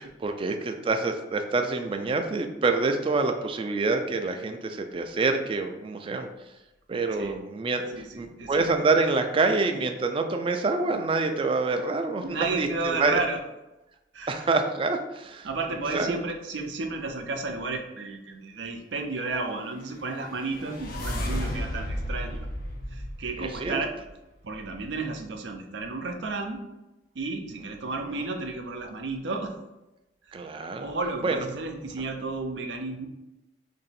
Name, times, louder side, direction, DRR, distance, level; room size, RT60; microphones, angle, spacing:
voice 1, 0.0-6.3 6.9-13.2 14.3-15.5 15.9-16.1 23.4-23.8 28.2-28.3 30.3-30.9 31.2-31.4, right 3 dB, 30° right, 6 dB, 0.3 m, -26 dB
voice 2, 7.9-8.7 12.2-13.4 14.1-14.5 15.4-22.5 22.9-23.9 24.4-26.6 27.1-29.6 30.3-30.4 30.8-33.1, right 3 dB, 85° right, 4 dB, 0.5 m, -32 dB
sound 1, 19.9-24.1, equal, 55° left, 0.5 m, -33 dB
2.9 x 2.6 x 4.1 m, 0.99 s
head